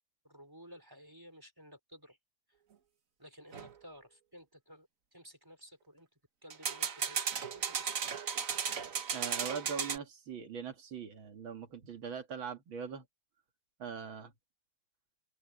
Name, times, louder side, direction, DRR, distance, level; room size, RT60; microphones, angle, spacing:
voice 1, 0.2-2.2 2.5-2.6 3.2-6.1 6.4-7.9, equal, 10° right, 4.9 m, -54 dB
sound 1, 3.5-3.7 6.5-10.0, right 7 dB, 45° right, 1.4 m, -35 dB
voice 2, 9.1-13.1 13.8-14.3, right 6 dB, 70° right, 2.8 m, -41 dB
open air
omnidirectional pair, 2.2 m